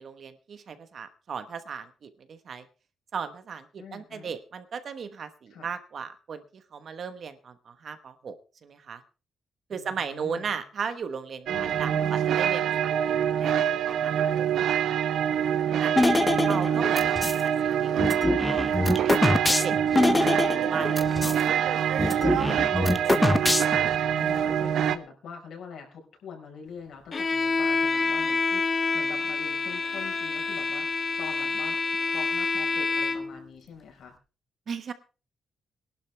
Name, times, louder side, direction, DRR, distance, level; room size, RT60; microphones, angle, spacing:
voice 1, 0.0-2.6 3.1-8.4 8.6-9.0 9.7-12.9 13.2-13.5 13.8-15.0 15.7-16.0 16.4-18.6 19.1-22.1 22.4-23.5 24.1-24.3 34.7-34.9, right 6 dB, 45° right, 10 dB, 1.2 m, -37 dB
voice 2, 3.8-4.4 5.5-5.7 9.7-10.6 11.5-12.2 24.0-31.8 32.1-34.1, left 6 dB, 65° left, 2 dB, 4.8 m, -44 dB
sound 1, 11.5-25.0, right 9 dB, 70° right, 0.8 m, -25 dB
sound 2, 16.0-17.4 18.0-21.4 21.7-21.8 22.0-24.0, left 2 dB, 10° left, 0.7 m, -24 dB
Bowed string instrument, 27.1-33.4, left 4 dB, 30° left, 1.4 m, -27 dB
21.0 x 11.5 x 3.4 m, 0.34 s
wide cardioid pair, 175°, 0 cm